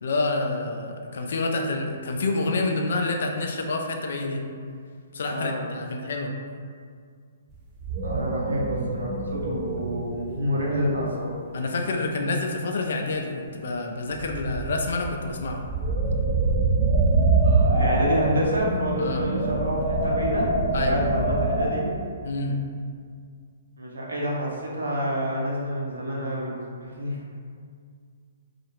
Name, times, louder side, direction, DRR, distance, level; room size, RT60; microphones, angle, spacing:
voice 1, 0.0-4.4 5.1-6.3 11.5-15.6 19.0-19.2 20.7-21.1 22.2-22.6, left 2 dB, 70° left, 3 dB, 0.3 m, -28 dB
voice 2, 5.2-5.7 8.0-11.3 17.4-21.9 23.8-27.4, equal, 90° right, -4 dB, 0.6 m, -28 dB
sound 1, 7.5-7.6 7.8-11.2 11.8-12.1 14.2-21.7, right 2 dB, 30° right, 0.4 m, -25 dB
2.3 x 2.0 x 2.9 m, 2.1 s
hypercardioid pair, 135°, 0 cm